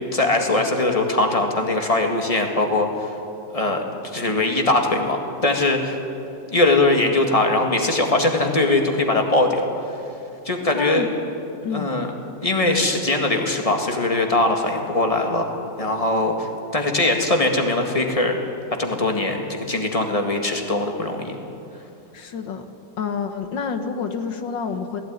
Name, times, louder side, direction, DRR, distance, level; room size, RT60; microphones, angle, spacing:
voice 1, 0.1-3.2 3.5-6.0 6.5-9.9 10.5-11.1 11.7-12.1 12.4-15.5 15.8-18.4 18.8-21.4, left 2 dB, 20° left, 3 dB, 1.9 m, -21 dB
voice 2, 10.7-11.1 11.6-11.9 22.1-22.7 23.0-25.0, left 6 dB, 75° left, 7 dB, 2.0 m, -28 dB
18.0 x 16.0 x 9.5 m, 2.8 s
omnidirectional pair, 2.0 m